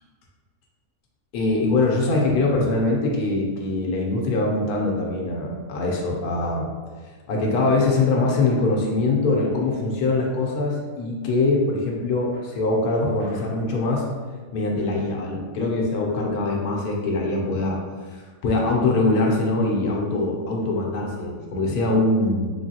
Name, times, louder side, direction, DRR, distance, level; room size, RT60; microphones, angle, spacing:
voice 1, 1.3-6.7 7.3-14.0 14.5-22.5, left 2 dB, 75° left, -1 dB, 1.1 m, -23 dB
3.7 x 3.2 x 2.8 m, 1.4 s
omnidirectional pair, 1.6 m